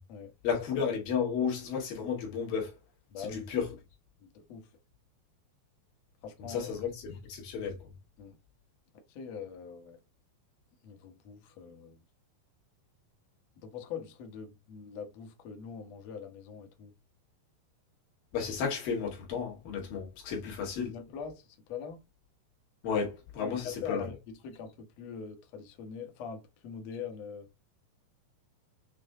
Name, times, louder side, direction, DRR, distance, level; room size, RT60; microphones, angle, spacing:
voice 1, 0.4-2.7 3.2-3.7 6.5-7.8 18.3-20.9 22.8-24.1, left 6 dB, 60° left, 3.4 m, -33 dB
voice 2, 3.1-3.5 4.2-4.7 6.2-6.7 8.2-8.4 9.1-10.0 10.8-12.0 13.6-16.9 20.4-22.0 23.4-24.1 24.4-27.5, left 6 dB, 80° left, 1.5 m, -43 dB
7.7 x 3.2 x 3.7 m
omnidirectional pair, 5.0 m